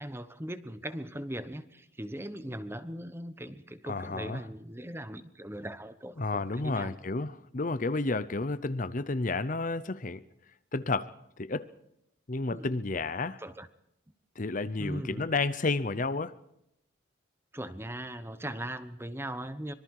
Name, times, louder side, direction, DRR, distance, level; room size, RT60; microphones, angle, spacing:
voice 1, 0.0-6.9 12.5-12.7 13.4-13.7 14.8-15.3 17.5-19.7, right 1 dB, 10° right, 1.0 m, -39 dB
voice 2, 3.9-4.4 6.2-10.2 10.7-11.7 12.3-13.4 14.4-16.3, left 3 dB, 40° left, 0.7 m, -31 dB
25.0 x 23.0 x 4.8 m
head